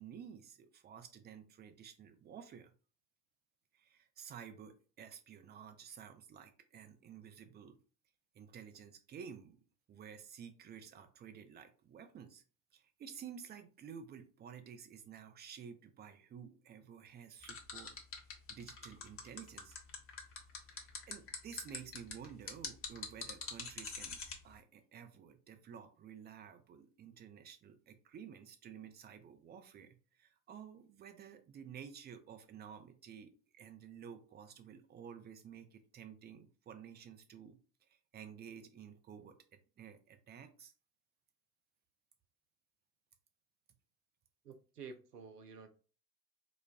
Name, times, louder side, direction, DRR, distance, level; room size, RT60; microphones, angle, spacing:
voice 1, 0.0-2.7 3.7-7.8 8.3-9.6 9.9-12.4 12.7-18.0 18.5-19.8 20.7-39.4 39.8-40.7, right 7 dB, 20° right, 0.5 m, -52 dB
sound 1, 17.4-24.4, left 5 dB, 30° left, 0.9 m, -43 dB
voice 2, 44.4-45.7, right 5 dB, 85° right, 0.6 m, -51 dB
4.2 x 2.2 x 2.2 m
figure-of-eight pair, 60°, 46 cm